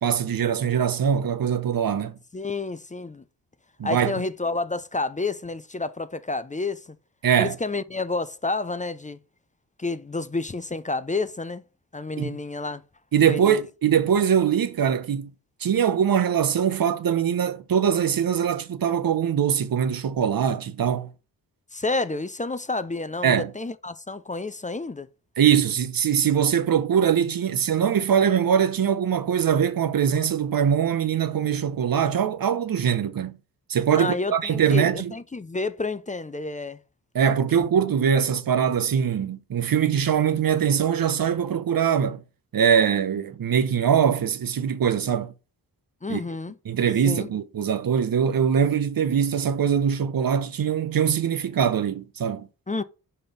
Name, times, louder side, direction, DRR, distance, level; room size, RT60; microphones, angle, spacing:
voice 1, 0.0-2.1 3.8-4.1 7.2-7.6 12.2-12.4 13.1-15.3 15.6-21.1 23.2-23.5 25.4-33.3 33.7-35.1 37.1-42.2 42.5-45.3 46.1-46.2 46.7-52.5, right 8 dB, 60° right, 0.8 m, -22 dB
voice 2, 2.3-3.2 3.8-7.0 7.4-9.2 9.8-11.6 11.9-12.8 13.2-13.6 21.7-25.1 33.9-36.8 37.6-37.7 46.0-46.6 47.0-47.3 52.7-52.8, left 3 dB, 20° left, 0.5 m, -30 dB
5.3 x 4.3 x 5.1 m
cardioid pair, 60°, 40 cm